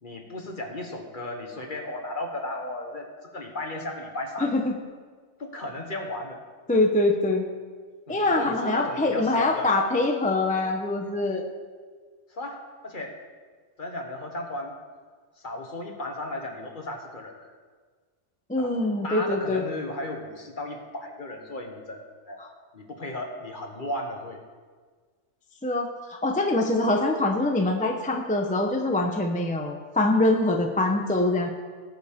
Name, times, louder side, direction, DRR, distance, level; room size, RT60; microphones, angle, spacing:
voice 1, 0.0-4.6 5.4-6.4 8.1-9.7 12.3-13.2 13.8-14.8 15.4-17.5 18.6-18.7 19.0-22.4 22.7-24.4, left 1 dB, 40° left, 3 dB, 1.3 m, -35 dB
voice 2, 4.4-4.7 6.7-7.4 8.1-11.4 18.5-19.6 22.4-22.5 25.6-25.9 26.2-31.5, left 2 dB, 10° left, 2 dB, 0.7 m, -24 dB
18.5 x 7.1 x 3.6 m, 1.5 s
omnidirectional pair, 1.3 m